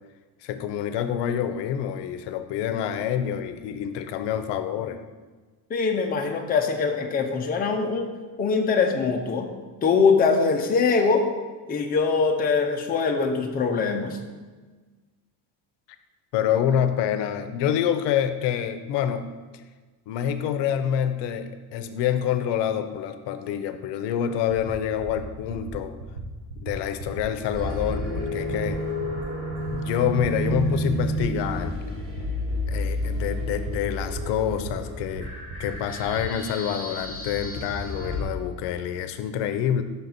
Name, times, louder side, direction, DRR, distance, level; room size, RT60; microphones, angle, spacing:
voice 1, 0.4-5.0 16.3-19.3 20.1-25.9 26.6-28.8 29.7-31.8 32.7-35.3 35.6-39.8, left 9 dB, 90° left, 10 dB, 0.6 m, -27 dB
voice 2, 5.7-8.1 8.4-9.5 9.8-11.3 11.7-14.2, left 5 dB, 20° left, 2 dB, 0.5 m, -22 dB
sound 1, 24.5-24.7 25.0-25.2 25.5-25.7 26.0-26.2 26.5-26.7 27.0-27.2 27.5-27.7 28.0-28.2 28.5-28.7 29.0-29.2 29.5-29.7 30.0-30.2 30.5-30.7 31.0-31.2 31.5-31.7 32.0-32.2 32.5-32.7 33.0-33.2 33.5-33.7 34.0-34.2 34.5-34.7 35.0-35.2 35.5-35.7 36.0-36.2, right 5 dB, 70° right, 1.1 m, -37 dB
sound 2, 27.5-38.2, equal, 30° right, 1.4 m, -31 dB
5.7 x 3.9 x 5.8 m, 1.3 s
cardioid pair, 165°, 41 cm